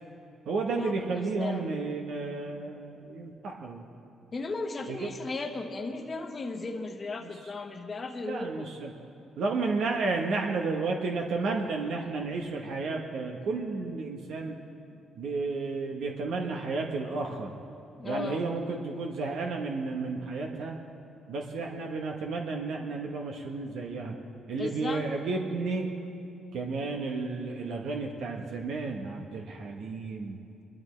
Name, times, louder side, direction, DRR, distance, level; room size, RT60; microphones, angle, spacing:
voice 1, 0.5-3.8 4.9-5.1 7.2-7.3 8.2-8.9 9.4-14.5 15.2-17.5 18.0-20.8 21.3-24.1 24.5-25.9 26.5-30.4, right 3 dB, 75° right, 1 dB, 1.1 m, -32 dB
voice 2, 4.3-8.7 18.0-18.4 24.6-25.1, left 3 dB, 35° left, 3 dB, 1.0 m, -35 dB
21.5 x 12.5 x 3.2 m, 2.6 s
cardioid pair, 90°, 0 cm